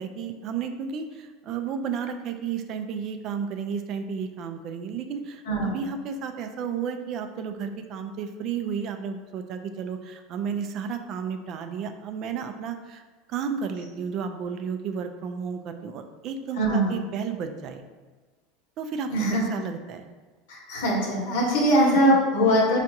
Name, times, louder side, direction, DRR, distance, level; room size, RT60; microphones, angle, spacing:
voice 1, 0.0-13.0 13.3-17.8 18.8-20.0 21.9-22.0, right 6 dB, 50° right, 7 dB, 0.3 m, -32 dB
voice 2, 16.6-16.9 19.1-19.5 20.5-22.8, equal, 85° left, -2 dB, 1.0 m, -21 dB
4.5 x 2.4 x 2.7 m, 1.3 s
supercardioid pair, 120°, 0 cm